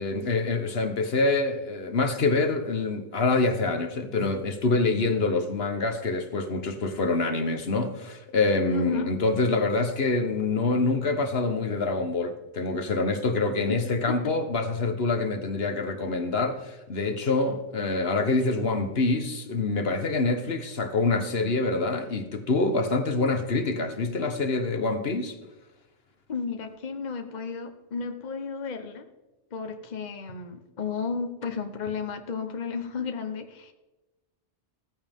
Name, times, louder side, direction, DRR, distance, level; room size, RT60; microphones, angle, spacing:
voice 1, 0.0-25.3, left 3 dB, 60° left, 1.4 m, -26 dB
voice 2, 8.7-9.1 13.7-13.8 14.1-14.3 26.3-29.1 29.5-33.7, left 5 dB, 40° left, 1.1 m, -33 dB
15.5 x 14.5 x 3.6 m
omnidirectional pair, 1.2 m